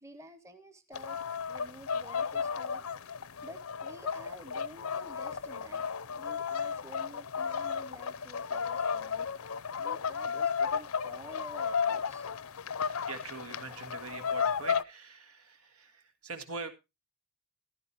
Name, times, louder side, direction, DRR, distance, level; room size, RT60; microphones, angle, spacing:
voice 1, 0.0-2.9 3.4-5.9 6.2-9.3 9.8-12.3 13.7-13.8, equal, 15° right, 10 dB, 0.8 m, -50 dB
sound 1, 0.9-14.8, left 6 dB, 75° left, 0.6 m, -34 dB
voice 2, 13.1-16.7, right 4 dB, 80° right, 7 dB, 2.0 m, -43 dB
14.5 x 11.0 x 2.9 m, 0.25 s
head